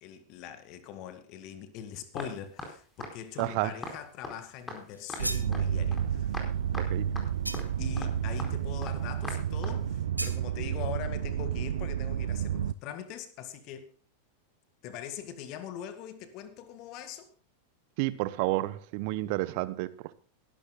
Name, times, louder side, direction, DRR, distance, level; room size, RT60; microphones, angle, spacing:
voice 1, 0.0-6.4 7.8-13.9 14.8-17.3, left 9 dB, 40° left, 1.8 m, -42 dB
sound 1, 2.2-2.3 2.6-2.7 3.0-3.1 3.4-3.5 3.8-4.0 4.2-4.4 4.7-4.8 5.1-5.2 5.5-5.6 5.9-6.0 6.3-6.5 6.7-6.9 7.2-7.3 7.5-7.7 8.0-8.1 8.4-8.5 8.8-8.9 9.2-9.4 9.6-9.8, left 2 dB, 10° left, 4.4 m, -39 dB
voice 2, 3.4-3.7 6.8-7.1 18.0-20.1, right 18 dB, 45° right, 0.9 m, -30 dB
sound 2, 4.9-5.5 7.4-7.9 10.2-10.4, equal, 90° right, 1.4 m, -36 dB
sound 3, 5.2-12.7, right 9 dB, 65° right, 0.4 m, -31 dB
21.5 x 12.0 x 2.3 m
figure-of-eight pair, 90°, 0 cm